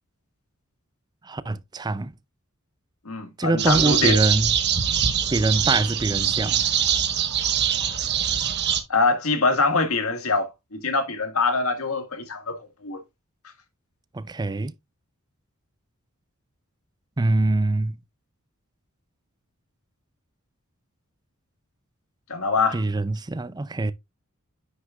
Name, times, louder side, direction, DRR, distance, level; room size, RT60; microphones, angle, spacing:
voice 1, 1.2-2.1 3.4-4.6 5.3-6.6 14.1-14.7 17.2-18.0 22.7-23.9, right 2 dB, 20° right, 0.5 m, -24 dB
voice 2, 3.1-4.2 8.9-13.0 22.3-22.8, left 3 dB, 90° left, 1.9 m, -24 dB
sound 1, 3.6-8.8, right 8 dB, 50° right, 1.2 m, -23 dB
9.5 x 6.4 x 2.4 m
head